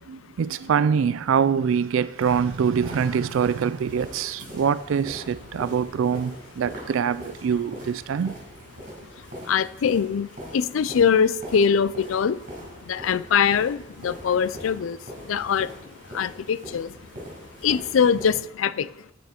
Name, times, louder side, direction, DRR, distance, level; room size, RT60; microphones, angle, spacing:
voice 1, 0.0-8.3, right 7 dB, 75° right, 0.3 m, -24 dB
sound 1, 2.2-18.4, equal, 40° right, 4.8 m, -42 dB
voice 2, 9.5-10.3 10.5-12.4 12.9-13.8 14.0-15.0 15.3-15.7 16.1-16.9 17.6-18.9, left 7 dB, 75° left, 0.4 m, -22 dB
10.5 x 8.9 x 4.4 m
head